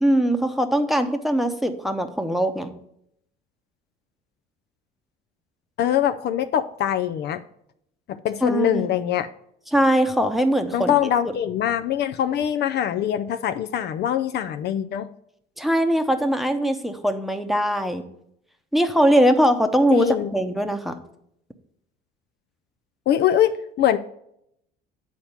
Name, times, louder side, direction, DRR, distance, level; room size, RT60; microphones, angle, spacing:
voice 1, 0.0-2.7 8.4-8.9 9.7-10.9 15.6-18.0 18.7-20.9, equal, ahead, 6 dB, 0.9 m, -21 dB
voice 2, 5.8-7.4 8.1-9.3 10.7-15.1 19.9-20.3 23.1-24.0, left 10 dB, 55° left, 10 dB, 0.5 m, -23 dB
8.5 x 4.3 x 5.8 m, 0.74 s
supercardioid pair, 85°, 21 cm